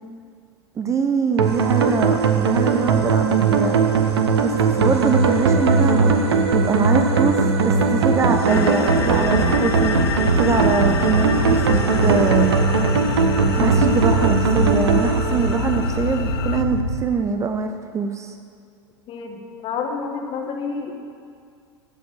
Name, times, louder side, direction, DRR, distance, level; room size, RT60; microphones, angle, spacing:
voice 1, 0.8-3.8 4.4-6.2 6.5-10.0 10.4-12.6 13.6-18.3, right 5 dB, 20° right, 7 dB, 0.6 m, -23 dB
sound 1, 1.4-16.4, right 4 dB, 70° right, 1.0 m, -19 dB
sound 2, 8.5-16.6, left 10 dB, 60° left, 0.5 m, -31 dB
sound 3, 8.9-17.0, left 1 dB, 85° left, 1.2 m, -25 dB
voice 2, 19.1-20.9, left 5 dB, 40° left, 2 dB, 1.7 m, -29 dB
14.5 x 5.2 x 7.7 m, 2.2 s
figure-of-eight pair, 85°, 14 cm